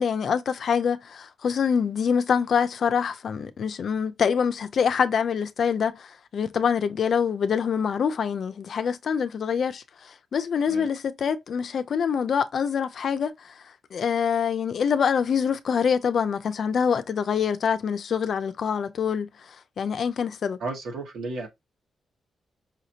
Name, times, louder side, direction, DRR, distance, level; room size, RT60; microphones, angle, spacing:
voice 1, 0.0-13.5 13.9-19.3 19.8-20.6, left 7 dB, 65° left, 0.6 m, -25 dB
voice 2, 20.6-21.5, right 3 dB, 90° right, 1.9 m, -33 dB
5.7 x 2.8 x 2.8 m
cardioid pair, 95°, 0 cm